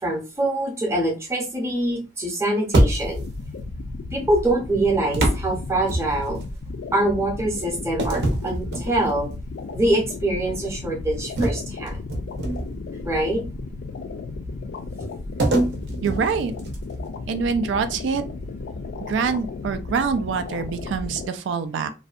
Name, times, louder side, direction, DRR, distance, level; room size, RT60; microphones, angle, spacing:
voice 1, 0.0-3.3 4.1-6.4 6.9-9.3 9.7-12.0 13.0-13.4, right 1 dB, 15° right, 0 dB, 0.6 m, -24 dB
sound 1, 2.7-3.4 5.1-6.5 8.0-9.3 9.8-10.0 11.4-12.9 15.4-17.0, right 1 dB, 70° right, 0.7 m, -24 dB
sound 2, 3.0-21.3, left 3 dB, 80° left, 0.3 m, -34 dB
voice 2, 16.0-16.5 17.2-18.2 19.0-21.9, right 5 dB, 85° right, 9 dB, 0.3 m, -25 dB
2.6 x 2.1 x 2.4 m, 0.31 s
head